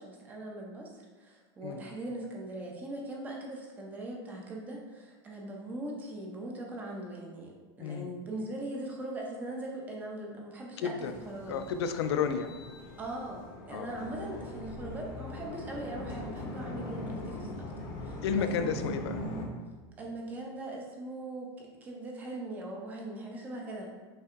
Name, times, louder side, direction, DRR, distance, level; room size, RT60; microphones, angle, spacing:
voice 1, 0.0-11.6 13.0-18.9 20.0-23.9, right 1 dB, 10° right, -1 dB, 0.4 m, -40 dB
voice 2, 7.8-8.1 10.8-11.1 11.5-12.5 13.7-14.5 18.2-19.2, left 6 dB, 75° left, 8 dB, 0.4 m, -32 dB
sound 1, 11.0-19.5, left 1 dB, 30° left, 0.6 m, -41 dB
5.5 x 3.3 x 2.4 m, 1.3 s
supercardioid pair, 180°, 14 cm